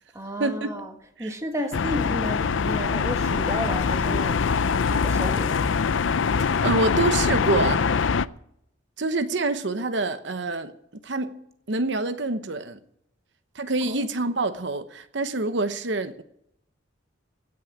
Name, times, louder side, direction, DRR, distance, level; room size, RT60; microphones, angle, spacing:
voice 1, 0.1-0.9 1.2-4.4 4.9-5.8 13.9-14.0, equal, 15° right, 1.7 m, -32 dB
sound 1, 1.7-8.3, left 5 dB, 75° left, 0.5 m, -23 dB
voice 2, 6.3-8.0 9.0-10.7 11.0-11.4 11.7-12.8 13.5-16.2, right 2 dB, 65° right, 0.9 m, -26 dB
16.5 x 6.4 x 9.8 m
head